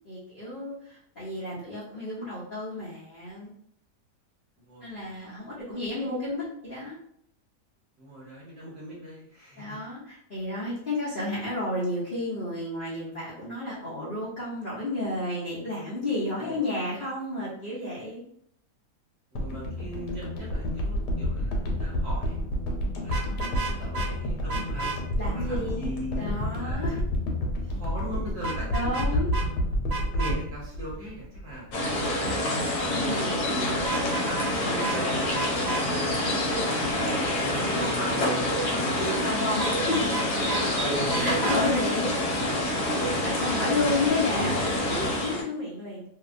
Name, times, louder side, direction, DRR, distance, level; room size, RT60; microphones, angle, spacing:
voice 1, 0.0-3.5 4.8-7.0 9.6-18.2 23.2-23.7 25.2-25.9 26.1-27.0 28.7-29.3 32.9-33.4 36.8-37.2 39.2-40.1 40.4-40.5 41.2-42.1 43.2-46.0, left 2 dB, 55° left, -8 dB, 0.6 m, -32 dB
voice 2, 4.6-5.3 8.0-9.9 16.4-16.6 19.3-22.4 23.0-24.8 25.2-26.3 26.6-27.0 27.5-29.2 30.1-32.5 32.9-33.3 33.9-36.3 36.9-39.2 40.7-41.4 43.1-43.2 43.5-44.1, equal, 50° right, -6 dB, 0.9 m, -39 dB
sound 1, 19.4-31.7 32.0-32.1, equal, 90° left, 1.2 m, -29 dB
Vehicle horn car horn honking, 23.0-24.1 24.5-25.0 28.4-29.1 29.3-29.5 29.9-30.3 33.8-34.5 34.8-35.0 35.3-35.8 39.6-40.6 41.1-41.6, right 3 dB, 75° right, 1.1 m, -32 dB
sound 2, 31.7-45.4, left 1 dB, 70° left, 1.1 m, -27 dB
2.7 x 2.1 x 2.5 m, 0.69 s
omnidirectional pair, 1.8 m